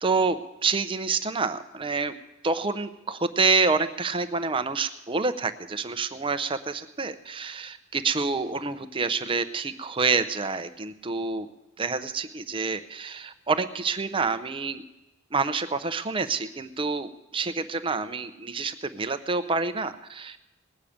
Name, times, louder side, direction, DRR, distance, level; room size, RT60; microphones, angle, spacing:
voice 1, 0.0-2.1 2.4-11.5 11.8-14.8 15.3-20.4, right 4 dB, 25° right, 10 dB, 0.6 m, -27 dB
19.0 x 6.5 x 8.6 m, 0.94 s
head